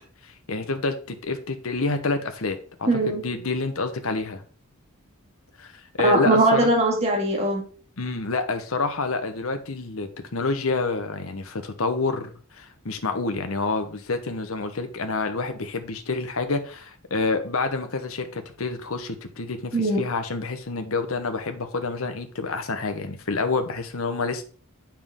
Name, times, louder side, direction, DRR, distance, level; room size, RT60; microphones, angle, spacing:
voice 1, 0.2-2.9 3.2-4.4 5.6-6.7 8.0-12.3 12.6-24.4, left 3 dB, 75° left, 8 dB, 1.0 m, -28 dB
voice 2, 2.9-3.2 6.0-7.6 19.7-20.0, right 2 dB, 30° right, 0 dB, 2.2 m, -20 dB
7.3 x 5.9 x 3.7 m, 0.40 s
head